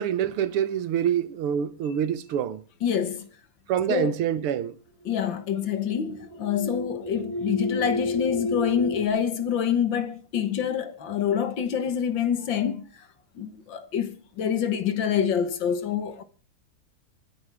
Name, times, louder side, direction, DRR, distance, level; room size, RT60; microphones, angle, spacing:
voice 1, 0.0-2.6 3.7-4.7, right 9 dB, 80° right, 1.9 m, -26 dB
voice 2, 2.8-3.3 3.9-4.1 5.1-12.8 13.4-16.2, left 8 dB, 60° left, 1.9 m, -26 dB
sound 1, 5.4-9.1, left 2 dB, 5° left, 3.3 m, -31 dB
25.5 x 9.7 x 3.5 m
omnidirectional pair, 2.4 m